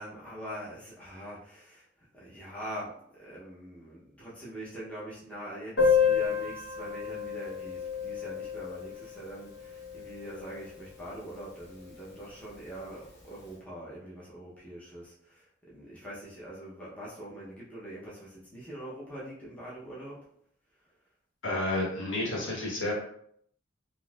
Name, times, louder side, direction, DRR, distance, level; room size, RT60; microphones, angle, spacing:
voice 1, 0.0-1.8 2.1-20.2, right 1 dB, 5° left, -7 dB, 0.7 m, -43 dB
Piano, 5.8-11.1 11.4-11.5 11.7-11.9 12.2-12.3 13.0-13.2, left 6 dB, 55° left, 0.8 m, -30 dB
voice 2, 21.4-22.9, left 1 dB, 80° left, -5 dB, 1.4 m, -30 dB
3.8 x 2.5 x 2.4 m, 0.67 s
head